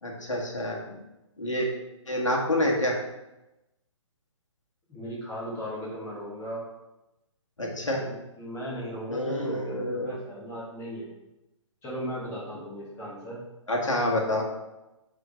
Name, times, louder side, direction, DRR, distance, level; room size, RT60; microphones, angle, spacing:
voice 1, 0.0-0.9 1.4-1.7 2.1-3.0 7.6-8.1 9.1-10.2 13.7-14.4, left 1 dB, 75° left, -1 dB, 2.0 m, -27 dB
voice 2, 4.9-6.7 8.0-11.1 11.8-13.4, equal, 15° left, -7 dB, 2.8 m, -37 dB
6.4 x 4.4 x 5.3 m, 0.96 s
figure-of-eight pair, 130°, 16 cm